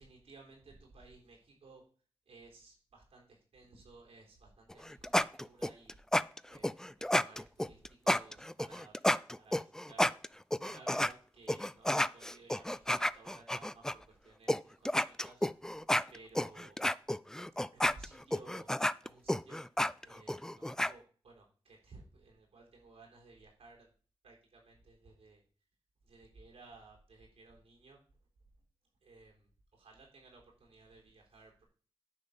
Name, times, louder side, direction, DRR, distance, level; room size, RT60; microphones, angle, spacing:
voice 1, 0.0-1.8 2.3-6.0 6.4-8.9 9.4-10.3 10.6-15.4 16.1-16.8 17.7-18.7 19.0-19.6 20.0-23.9 24.2-25.4 26.0-28.0 29.0-31.6, right 3 dB, 85° right, -1 dB, 3.7 m, -57 dB
sound 1, 4.7-11.1 11.5-13.9 14.5-14.6 14.8-20.9, left 1 dB, 5° left, 0.3 m, -31 dB
9.9 x 3.6 x 6.9 m, 0.41 s
cardioid pair, 50°, 10 cm